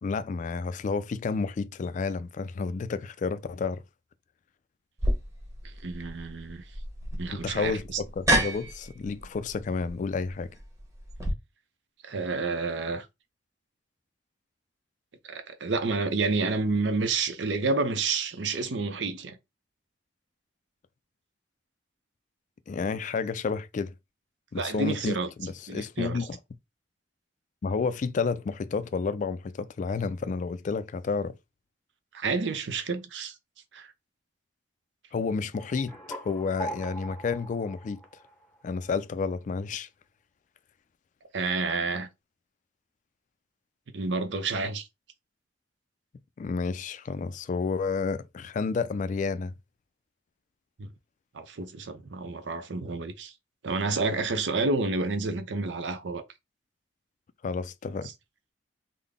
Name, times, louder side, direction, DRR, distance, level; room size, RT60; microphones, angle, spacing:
voice 1, 0.0-3.8 7.3-10.5 22.7-23.9 24.5-26.4 27.6-31.3 35.1-38.0 38.6-39.9 46.4-49.5 57.4-58.1, left 4 dB, 45° left, 0.3 m, -30 dB
sound 1, 5.0-11.3, right 1 dB, 20° right, 1.1 m, -31 dB
voice 2, 5.6-6.6 7.1-8.0 12.0-13.1 15.2-19.4 24.6-25.3 25.7-26.2 32.1-33.4 33.7-33.9 41.3-42.1 43.9-44.9 50.8-50.9 51.3-53.3 53.6-56.2, right 3 dB, 85° right, 0.6 m, -29 dB
sound 2, 35.5-38.8, right 1 dB, 5° left, 0.7 m, -41 dB
3.7 x 2.1 x 3.5 m
head